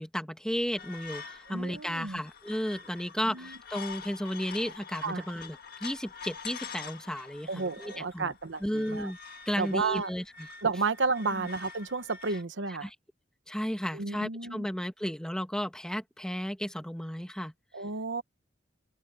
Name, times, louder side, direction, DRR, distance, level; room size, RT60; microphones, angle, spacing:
voice 1, 0.0-8.3 8.6-9.2 9.4-10.5 11.4-11.5 12.8-12.9 13.5-17.5, equal, 5° left, 1.5 m, -34 dB
sound 1, 0.8-12.4, left 6 dB, 55° left, 1.7 m, -46 dB
voice 2, 1.5-2.2 3.2-3.6 5.0-5.2 7.5-9.1 9.6-10.1 10.6-12.9 13.9-14.7 17.7-18.2, right 4 dB, 80° right, 1.1 m, -32 dB
open air
head